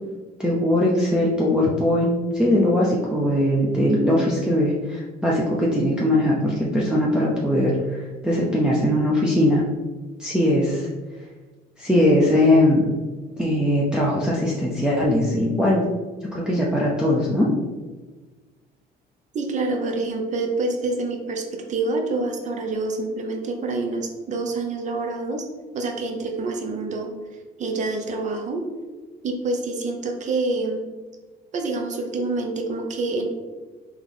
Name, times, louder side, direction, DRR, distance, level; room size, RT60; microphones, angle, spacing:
voice 1, 0.4-9.6 10.2-10.9 11.8-12.9 13.4-15.8 16.3-17.5, left 1 dB, 5° right, -5 dB, 0.6 m, -20 dB
voice 2, 19.3-25.5 25.7-27.1 27.6-28.6 29.2-30.8 31.5-33.3, right 3 dB, 45° right, 3 dB, 0.7 m, -27 dB
3.6 x 3.0 x 3.7 m, 1.3 s
cardioid pair, 110°, 17 cm